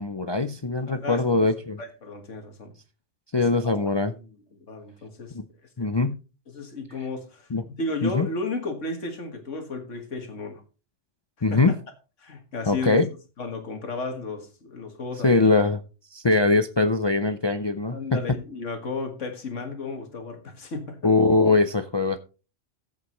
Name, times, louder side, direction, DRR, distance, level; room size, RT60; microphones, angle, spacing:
voice 1, 0.0-1.8 3.3-4.1 5.3-5.4 5.8-6.2 7.5-7.6 8.0-8.3 11.4-11.7 12.7-13.1 15.2-15.8 16.1-18.2 21.0-22.2, left 3 dB, 45° left, 9 dB, 0.3 m, -22 dB
voice 2, 0.9-1.5 1.8-2.7 3.4-3.7 4.1-4.4 4.7-5.3 5.8-5.9 6.5-10.6 11.5-11.6 12.2-13.0 13.4-15.4 17.9-21.1, left 3 dB, 75° left, 6 dB, 1.9 m, -34 dB
13.0 x 8.3 x 3.1 m, 0.33 s
omnidirectional pair, 1.3 m